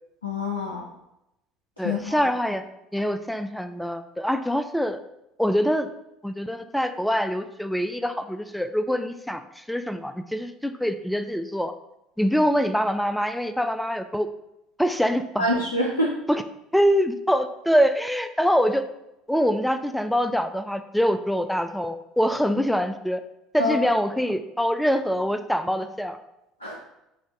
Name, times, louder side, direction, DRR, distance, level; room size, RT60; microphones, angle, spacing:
voice 1, 0.2-0.8 1.8-2.2 15.4-16.1 23.6-23.8 26.6-26.8, left 1 dB, 85° left, -1 dB, 0.4 m, -25 dB
voice 2, 1.8-2.6 2.9-5.0 5.4-5.9 6.2-11.7 12.2-14.3 14.8-15.5 16.3-16.4 16.7-18.8 19.3-23.2 23.5-26.2, equal, ahead, 9 dB, 0.3 m, -24 dB
5.0 x 2.6 x 3.7 m, 0.87 s
figure-of-eight pair, 60°, 0 cm